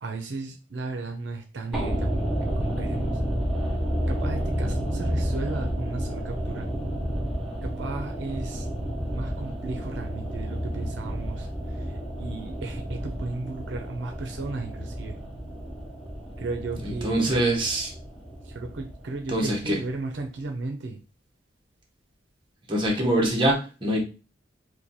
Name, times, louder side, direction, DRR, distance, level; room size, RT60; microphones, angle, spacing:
voice 1, 0.0-2.2 2.6-3.2 4.1-6.7 7.6-8.7 9.1-15.2 16.4-17.4 18.4-21.0, right 3 dB, 70° right, 3 dB, 0.5 m, -35 dB
sound 1, 1.7-19.9 20.2-20.3, equal, ahead, 0.6 m, -31 dB
voice 2, 16.8-17.9 19.3-19.8 22.7-24.0, right 1 dB, 25° right, -1 dB, 0.9 m, -24 dB
3.1 x 2.2 x 3.9 m, 0.33 s
head